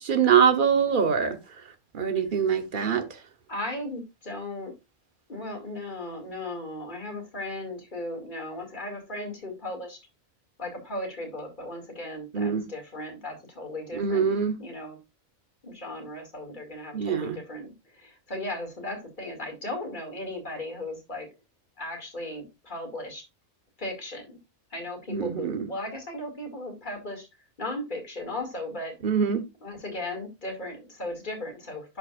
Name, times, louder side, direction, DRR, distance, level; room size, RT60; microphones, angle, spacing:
voice 1, 0.0-1.4 1.9-3.1 12.3-12.6 13.9-14.6 16.9-17.4 25.1-25.7 29.0-29.4, right 7 dB, 45° right, 1.0 m, -23 dB
voice 2, 3.5-4.7 5.3-10.0 10.6-14.3 14.6-15.0 15.6-21.3 21.8-23.2 23.8-24.4 24.7-27.3 27.6-28.9 29.6-32.0, left 1 dB, 40° left, 2.5 m, -36 dB
11.0 x 5.3 x 2.4 m
omnidirectional pair, 1.3 m